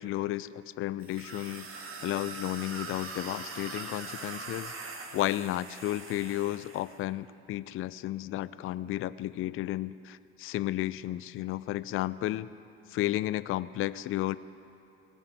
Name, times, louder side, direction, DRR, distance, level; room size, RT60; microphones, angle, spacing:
voice 1, 0.0-12.5 12.9-14.4, left 14 dB, 45° left, 17 dB, 0.4 m, -33 dB
sound 1, 1.0-7.0, right 4 dB, 45° right, 1.9 m, -42 dB
18.5 x 7.3 x 9.1 m, 2.7 s
hypercardioid pair, 55°, 31 cm